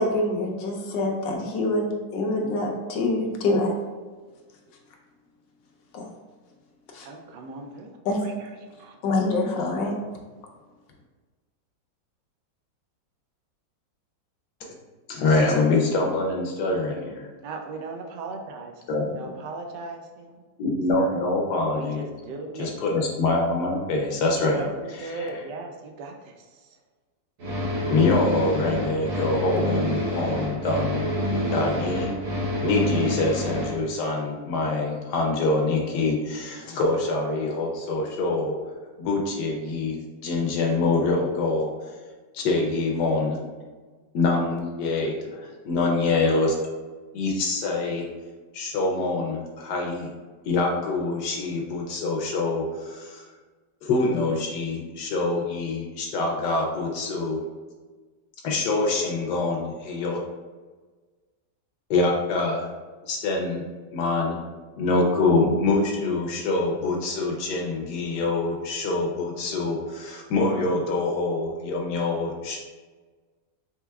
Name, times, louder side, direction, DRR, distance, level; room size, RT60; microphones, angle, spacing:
voice 1, 0.0-3.7 5.9-6.1 6.9-7.1 8.0-8.2 9.0-9.9, left 2 dB, 85° left, 1 dB, 1.4 m, -25 dB
voice 2, 7.0-7.9 8.2-8.5 8.8-9.0 17.4-18.7 19.1-20.4 21.0-21.2 21.7-22.7 24.1-26.8, right 3 dB, 75° right, 3 dB, 1.1 m, -38 dB
voice 3, 15.1-17.3 18.9-19.1 20.6-22.0 22.6-24.7 25.1-25.3 27.9-31.1 31.5-32.2 32.6-38.5 39.0-41.7 42.3-43.4 44.1-46.5 47.1-48.1 48.5-50.1 50.4-53.2 53.8-57.4 58.4-60.2 61.9-62.7 63.1-63.6 63.9-64.4 64.8-72.6, left 3 dB, 70° left, 0 dB, 1.2 m, -25 dB
sound 1, 27.4-33.8, equal, 55° right, 1.2 m, -27 dB
4.4 x 3.5 x 2.3 m, 1.4 s
omnidirectional pair, 1.9 m